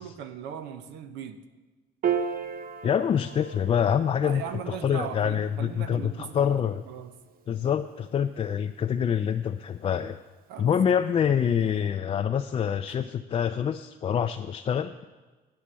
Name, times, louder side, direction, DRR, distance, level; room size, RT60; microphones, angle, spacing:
voice 1, 0.0-1.4 4.2-7.1 10.5-10.9 12.9-13.0, right 8 dB, 85° right, 10 dB, 0.7 m, -38 dB
Piano, 2.0-8.7, right 7 dB, 60° right, 0.9 m, -36 dB
voice 2, 2.8-6.8 7.5-10.2 10.6-14.9, left 8 dB, 35° left, 7 dB, 0.4 m, -26 dB
8.5 x 8.3 x 7.5 m, 1.3 s
cardioid pair, 110°, 17 cm